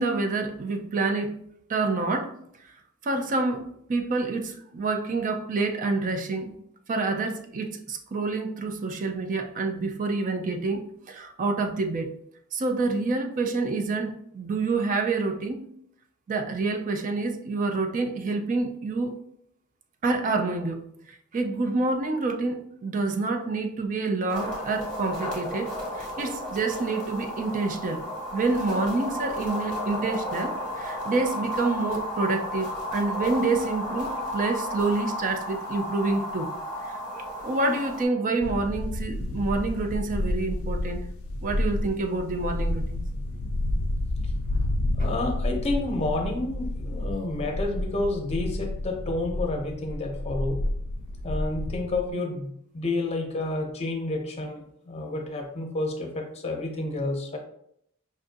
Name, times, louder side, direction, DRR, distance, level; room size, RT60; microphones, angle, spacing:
voice 1, 0.0-1.4 1.7-2.3 3.0-6.6 6.9-12.1 12.5-15.6 16.3-19.2 20.0-20.8 21.3-25.7 26.0-28.0 28.3-36.5 36.8-36.9 37.4-41.0 41.4-43.0, right 3 dB, 35° right, 6 dB, 0.4 m, -27 dB
sound 1, 24.3-38.0, left 1 dB, 5° left, 1.2 m, -33 dB
sound 2, 38.4-52.1, left 1 dB, 65° left, 0.4 m, -30 dB
voice 2, 45.0-50.6 51.2-57.4, left 2 dB, 30° left, 2 dB, 0.6 m, -30 dB
5.3 x 2.5 x 2.5 m, 0.72 s
head